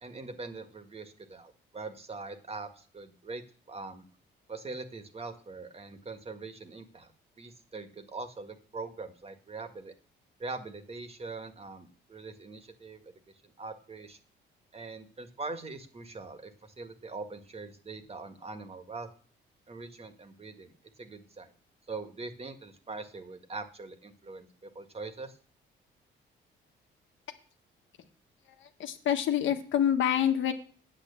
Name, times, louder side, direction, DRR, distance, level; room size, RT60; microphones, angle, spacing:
voice 1, 0.0-3.4 3.7-4.0 4.5-7.1 7.4-9.9 10.4-13.1 13.4-14.2 14.7-19.1 19.7-20.7 21.0-21.5 21.9-25.4, right 3 dB, 30° right, 8 dB, 1.7 m, -42 dB
voice 2, 28.8-30.5, left 9 dB, 75° left, 7 dB, 1.5 m, -26 dB
8.9 x 7.6 x 7.0 m, 0.42 s
cardioid pair, 90°, 20 cm